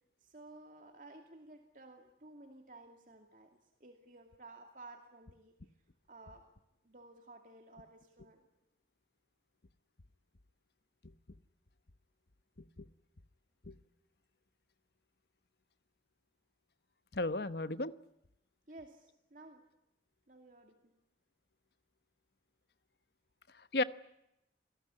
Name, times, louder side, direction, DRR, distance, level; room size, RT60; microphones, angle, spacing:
voice 1, 0.2-5.5 6.1-6.4 6.8-8.5 18.7-19.6 20.3-20.9, right 2 dB, 45° right, 4 dB, 2.5 m, -55 dB
voice 2, 17.1-17.9 23.5-23.8, left 2 dB, 60° left, 14 dB, 1.0 m, -34 dB
28.0 x 19.0 x 9.8 m, 0.85 s
head